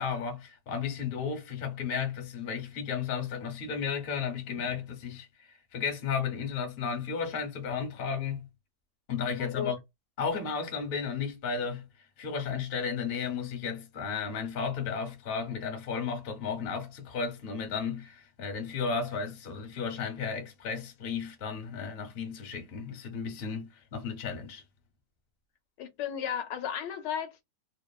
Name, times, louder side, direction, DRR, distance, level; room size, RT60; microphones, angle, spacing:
voice 1, 0.0-8.5 9.1-9.8 10.2-11.9 12.2-24.6, left 6 dB, 50° left, 0.7 m, -34 dB
voice 2, 9.4-9.7 25.8-27.4, left 8 dB, 80° left, 1.2 m, -34 dB
3.0 x 2.1 x 2.3 m
omnidirectional pair, 1.9 m